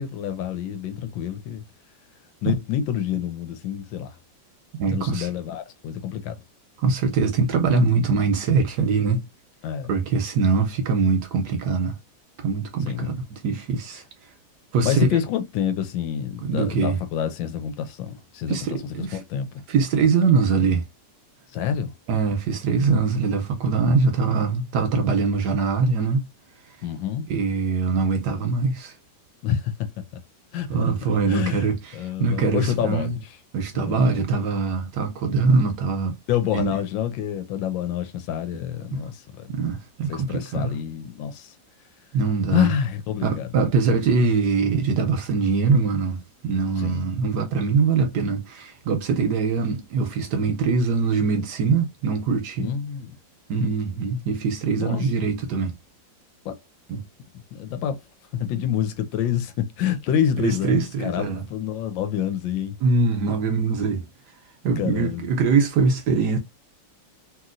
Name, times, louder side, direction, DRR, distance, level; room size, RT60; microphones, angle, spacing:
voice 1, 0.0-1.6 2.4-4.2 4.9-6.4 9.6-9.9 12.8-13.1 14.8-18.6 19.0-19.5 21.5-21.9 26.8-27.3 29.4-29.7 30.5-30.9 31.3-31.7 31.9-33.2 33.7-34.4 36.3-39.5 40.1-41.5 42.5-43.5 46.8-47.1 52.6-53.2 54.8-55.1 56.4-56.6 57.5-58.0 58.3-62.8 64.8-65.3, left 9 dB, 80° left, 1.3 m, -27 dB
voice 2, 4.8-5.3 6.8-9.2 9.9-12.0 12.4-14.0 14.7-15.1 16.4-17.0 18.5-19.2 19.7-20.8 22.1-26.3 27.3-28.9 30.7-31.9 32.2-33.2 33.5-36.2 36.5-36.8 39.5-40.7 42.1-42.7 43.2-52.7 53.5-55.7 56.9-57.0 60.4-61.4 62.8-64.1 64.6-66.4, right 4 dB, 70° right, 1.1 m, -22 dB
3.0 x 2.9 x 2.4 m
omnidirectional pair, 2.1 m